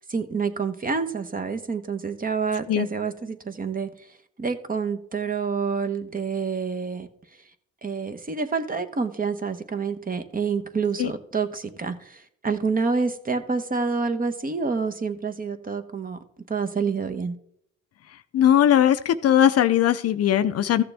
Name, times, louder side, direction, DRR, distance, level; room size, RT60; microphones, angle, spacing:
voice 1, 0.1-4.1 4.4-7.1 7.8-16.2 16.5-17.3, right 5 dB, 30° right, 9 dB, 1.0 m, -28 dB
voice 2, 18.3-20.8, left 10 dB, 55° left, 12 dB, 0.5 m, -19 dB
14.0 x 6.7 x 3.4 m, 0.69 s
cardioid pair, 90°, 30 cm